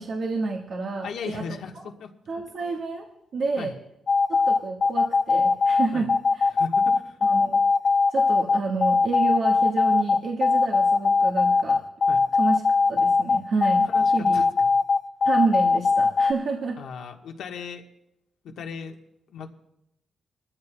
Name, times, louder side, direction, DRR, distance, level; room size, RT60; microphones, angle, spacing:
voice 1, 0.0-1.4 2.3-3.7 4.3-6.5 7.2-7.6 8.1-11.9 12.4-12.6 12.9-14.4 15.2-16.8, right 4 dB, 65° right, 0 dB, 1.4 m, -29 dB
voice 2, 1.0-2.1 3.6-3.7 5.9-6.1 6.5-7.2 12.1-12.2 13.8-14.7 16.8-17.8 18.6-19.0 19.3-19.5, left 6 dB, 90° left, 3 dB, 1.3 m, -37 dB
sound 1, 4.1-16.3, left 4 dB, 45° left, 0.7 m, -20 dB
22.0 x 14.5 x 2.3 m, 0.82 s
cardioid pair, 125°, 0 cm